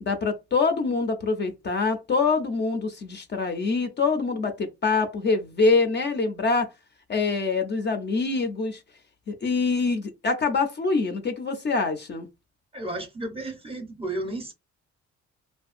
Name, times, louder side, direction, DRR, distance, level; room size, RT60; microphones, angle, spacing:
voice 1, 0.0-6.7 7.1-8.8 9.3-12.3, left 4 dB, 35° left, 0.5 m, -25 dB
voice 2, 12.7-14.5, right 2 dB, 20° right, 0.6 m, -33 dB
2.5 x 2.3 x 2.4 m
cardioid pair, 90°, 30 cm